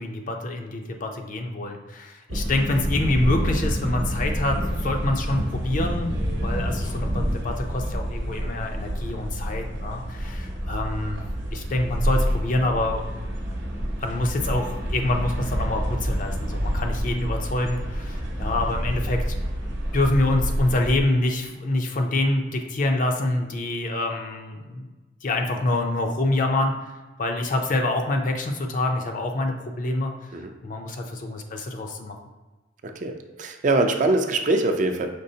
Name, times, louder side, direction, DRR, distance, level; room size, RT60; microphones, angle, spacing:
voice 1, 0.0-4.6 4.8-11.2 11.5-13.0 14.0-19.4 19.7-24.9 25.2-26.7 27.2-30.1 30.6-32.2, left 2 dB, 45° left, 3 dB, 0.5 m, -26 dB
sound 1, 2.3-21.0, equal, 85° right, 0.8 m, -28 dB
voice 2, 32.8-35.1, right 2 dB, 40° right, 5 dB, 0.4 m, -23 dB
5.2 x 3.5 x 2.7 m, 1.2 s
head